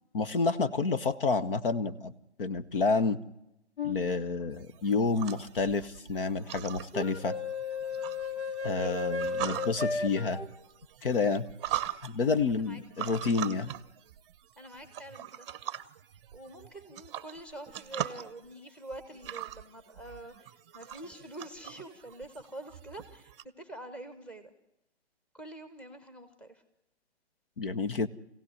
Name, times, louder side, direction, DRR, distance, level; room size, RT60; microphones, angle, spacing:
voice 1, 0.1-2.1 2.4-3.2 3.8-7.4 8.6-10.4 11.0-11.4 12.0-13.7 27.6-28.1, left 4 dB, 50° left, 12 dB, 1.3 m, -29 dB
sound 1, 3.8-4.0 6.9-10.5, left 4 dB, 70° left, 3.4 m, -34 dB
sound 2, 4.5-23.4, right 12 dB, 25° right, 0.8 m, -42 dB
voice 2, 8.7-9.1 11.7-11.9 12.5-13.3 14.6-15.5 16.3-24.5 25.3-26.6, right 1 dB, 5° left, 9 dB, 1.3 m, -46 dB
26.0 x 16.5 x 9.7 m, 0.87 s
figure-of-eight pair, 135°, 34 cm